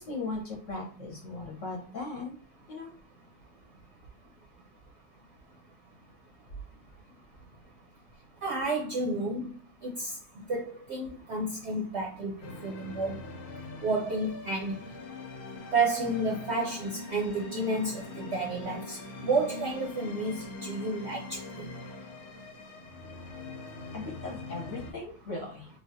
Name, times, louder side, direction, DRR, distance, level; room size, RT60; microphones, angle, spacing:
voice 1, 0.0-2.4 2.7-2.9 23.9-25.7, left 3 dB, 60° left, -2 dB, 1.0 m, -38 dB
voice 2, 8.4-9.5 9.8-10.1 10.5-10.6 10.9-12.3 12.6-13.2 13.8-14.7 15.7-21.4, right 2 dB, 60° right, -1 dB, 0.7 m, -30 dB
sound 1, 12.4-24.9, left 3 dB, 85° left, 1.1 m, -43 dB
3.3 x 2.3 x 2.5 m, 0.38 s
omnidirectional pair, 1.6 m